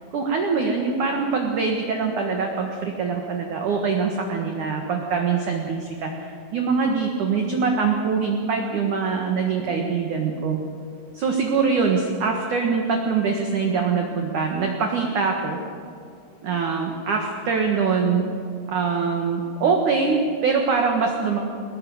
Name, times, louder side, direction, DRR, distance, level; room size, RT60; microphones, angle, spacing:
voice 1, 0.1-10.6 11.1-15.6 16.4-18.2 18.7-21.4, right 5 dB, 60° right, 2 dB, 2.1 m, -23 dB
22.0 x 20.0 x 7.8 m, 2.4 s
omnidirectional pair, 6.0 m